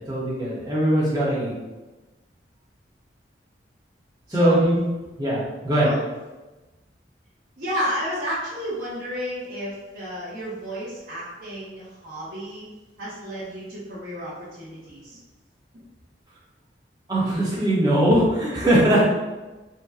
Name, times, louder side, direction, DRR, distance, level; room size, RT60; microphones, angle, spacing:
voice 1, 0.0-1.5 4.3-4.8 5.2-5.9 17.1-19.1, right 1 dB, 25° right, -7 dB, 0.9 m, -20 dB
voice 2, 7.6-12.7 13.0-15.2 15.7-15.8, equal, 55° right, -11 dB, 0.9 m, -32 dB
2.8 x 2.1 x 3.6 m, 1.1 s
head